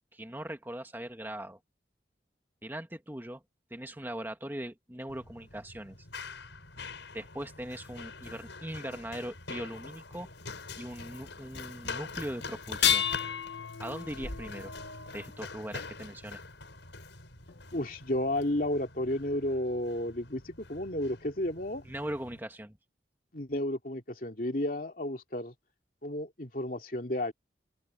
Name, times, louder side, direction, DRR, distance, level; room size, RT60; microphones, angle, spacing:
voice 1, 0.1-1.6 2.6-3.4 3.7-6.0 7.1-10.3 10.8-13.1 13.8-14.7 15.1-16.4 21.8-22.8, right 1 dB, 10° right, 1.9 m, -40 dB
Run, 5.1-22.4, left 4 dB, 90° left, 6.6 m, -45 dB
sound 1, 12.7-15.9 17.5-17.6 18.4-18.5, left 9 dB, 75° left, 1.0 m, -32 dB
voice 2, 17.7-21.8 23.3-25.5 26.0-27.3, left 1 dB, 50° left, 2.7 m, -32 dB
open air
head